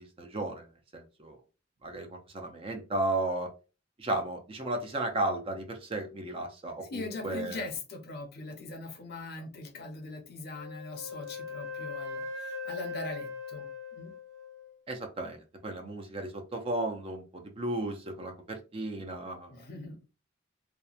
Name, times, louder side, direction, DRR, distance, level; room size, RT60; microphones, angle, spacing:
voice 1, 0.0-1.4 1.8-3.5 4.0-7.7 14.9-19.6, right 2 dB, 30° right, 0.5 m, -34 dB
voice 2, 6.8-14.1 19.5-20.0, left 2 dB, 55° left, 0.6 m, -41 dB
Wind instrument woodwind instrument, 10.5-14.7, left 4 dB, 70° right, 0.7 m, -40 dB
2.8 x 2.1 x 2.3 m
head